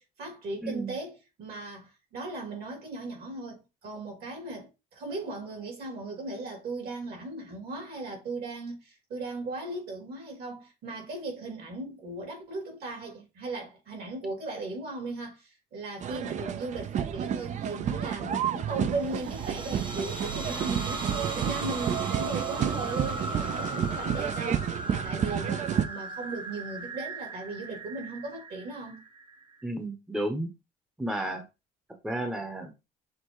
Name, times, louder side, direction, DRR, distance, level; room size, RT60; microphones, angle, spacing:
voice 1, 0.0-29.0, right 2 dB, 65° right, 2.6 m, -37 dB
voice 2, 0.6-0.9 29.6-30.5 31.0-31.4 32.0-32.7, right 1 dB, 5° right, 0.8 m, -32 dB
sound 1, 16.0-25.8, right 9 dB, 45° right, 0.5 m, -31 dB
sound 2, 19.0-29.6, right 3 dB, 30° right, 1.0 m, -37 dB
6.5 x 2.5 x 3.0 m
cardioid pair, 110°, 17 cm